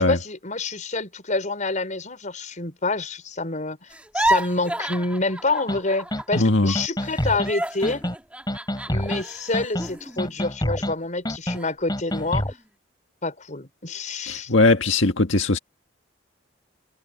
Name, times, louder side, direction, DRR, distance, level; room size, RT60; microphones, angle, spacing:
voice 1, 0.0-3.9 4.1-8.1 8.9-12.5 13.2-14.5, left 3 dB, 40° left, 5.4 m, -27 dB
sound 1, 3.9-6.4 6.7-11.1 11.5-11.7 12.1-12.6, right 1 dB, 5° right, 1.9 m, -30 dB
sound 2, 5.7-5.8 6.1-6.4 6.8-7.5 7.8-8.2 8.5-9.2 9.5-9.9 10.2-10.9 11.3-11.6 11.9-12.5, equal, 20° left, 8.0 m, -27 dB
voice 2, 6.3-6.7 14.3-15.6, left 2 dB, 85° left, 1.7 m, -19 dB
head